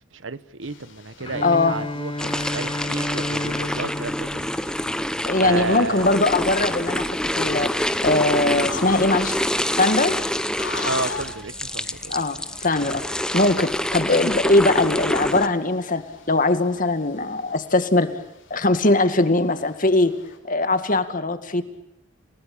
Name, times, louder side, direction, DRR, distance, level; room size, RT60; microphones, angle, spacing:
voice 1, 0.1-4.5 5.4-6.2 10.8-12.1, right 3 dB, 85° right, 1.2 m, -31 dB
sound 1, 0.6-20.4, left 4 dB, 80° left, 5.9 m, -43 dB
Bowed string instrument, 1.2-5.3, left 1 dB, 25° left, 1.2 m, -32 dB
voice 2, 1.4-1.8 5.3-9.4 9.8-10.2 12.1-13.0 13.3-18.1 18.5-20.2 20.4-21.6, left 2 dB, 45° left, 2.1 m, -21 dB
sound 2, 2.2-15.5, left 1 dB, 5° left, 1.0 m, -26 dB
30.0 x 18.5 x 8.7 m
head